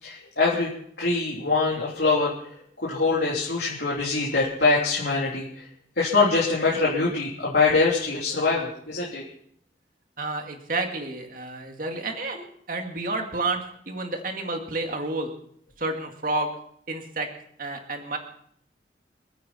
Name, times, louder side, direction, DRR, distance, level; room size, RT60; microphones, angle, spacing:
voice 1, 0.0-0.7 1.0-2.3 2.8-5.6 6.0-9.2, left 3 dB, 65° left, -5 dB, 3.4 m, -23 dB
voice 2, 10.2-15.3 15.8-16.5 16.9-17.3 17.6-18.2, right 2 dB, 45° right, 4 dB, 2.1 m, -30 dB
27.5 x 9.4 x 4.3 m, 0.66 s
head